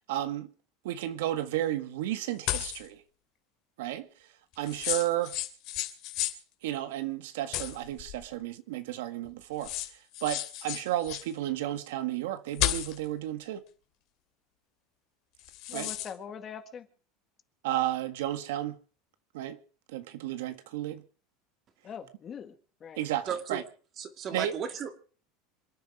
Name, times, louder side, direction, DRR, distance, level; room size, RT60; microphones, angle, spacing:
voice 1, 0.1-0.5 0.8-3.0 3.8-4.1 4.6-5.3 6.6-9.7 10.2-13.6 15.7-15.9 17.6-18.8 19.3-19.6 19.9-21.0 23.0-23.6 24.3-24.5, right 13 dB, 85° right, 1.6 m, -32 dB
sound 1, 2.5-2.9 4.6-6.4 7.5-8.3 9.2-9.3 9.6-11.3 12.5-13.0 15.4-16.1, left 14 dB, 55° left, 2.7 m, -33 dB
voice 2, 15.7-16.9 21.8-22.5 22.8-23.0, left 7 dB, 30° left, 1.9 m, -42 dB
voice 3, 23.3-23.6 24.0-25.0, right 7 dB, 30° right, 2.6 m, -35 dB
27.0 x 9.5 x 4.9 m
supercardioid pair, 150°, 0 cm